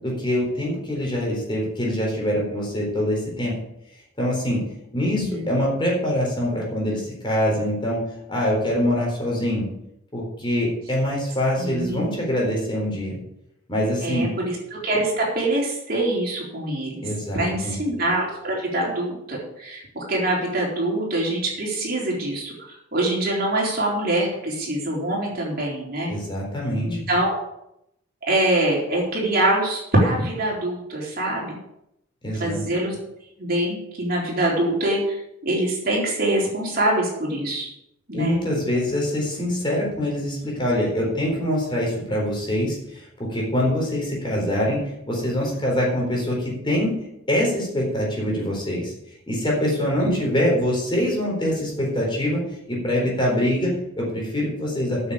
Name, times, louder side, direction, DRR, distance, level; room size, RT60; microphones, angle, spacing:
voice 1, 0.0-3.5 4.2-4.6 4.9-8.0 8.3-9.6 10.1-13.2 13.7-14.3 17.0-17.8 26.1-27.0 32.2-32.6 38.1-44.8 45.1-46.9 47.3-48.9 49.3-52.4 52.7-55.1, equal, 25° left, -2 dB, 4.1 m, -24 dB
voice 2, 5.0-5.4 11.6-12.1 14.0-17.0 17.3-26.1 26.8-27.3 28.3-31.6 32.4-33.0 33.4-37.7 38.1-38.4 50.0-50.2, right 1 dB, 50° right, -3 dB, 4.0 m, -24 dB
9.3 x 7.1 x 8.6 m, 0.80 s
head